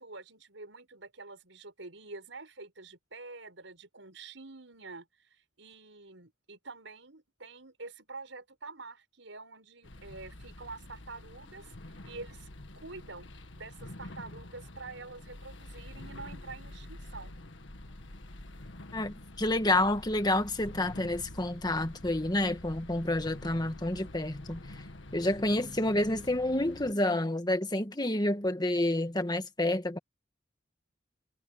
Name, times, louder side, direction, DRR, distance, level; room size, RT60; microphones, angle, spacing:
voice 1, 0.0-12.5 12.8-13.3 13.5-17.3, right 3 dB, 85° right, 5.8 m, -47 dB
sound 1, 9.8-26.9, left 1 dB, 80° left, 1.8 m, -47 dB
voice 2, 18.9-24.6 25.1-30.0, left 1 dB, 20° left, 1.7 m, -29 dB
head